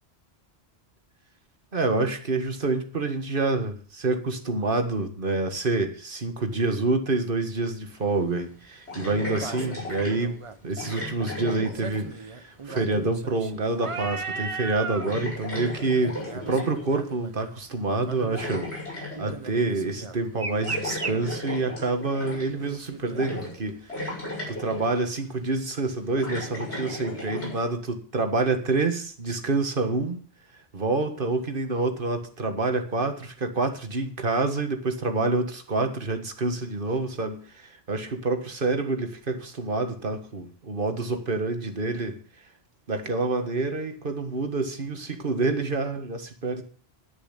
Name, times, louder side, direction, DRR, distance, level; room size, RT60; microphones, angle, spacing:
voice 1, 1.7-10.4 10.6-16.2 16.5-18.7 19.2-24.2 24.5-30.2 30.7-42.2 42.9-46.6, right 3 dB, 55° right, 1.7 m, -27 dB
sound 1, 7.7-7.8 9.2-10.6 11.7-15.1 15.5-15.7 16.0-17.5 18.0-18.7 19.1-21.1 22.6-23.7 24.5-24.6, right 4 dB, 35° right, 0.8 m, -37 dB
sound 2, 7.9-8.0 8.9-10.2 10.8-12.3 12.5-13.2 13.8-14.2 14.5-14.7 15.0-16.9 17.9-19.2 20.6-22.6 23.1-23.6 23.9-25.0 25.7-27.6, left 1 dB, 80° left, 6.0 m, -35 dB
11.0 x 7.1 x 8.1 m
omnidirectional pair, 1.1 m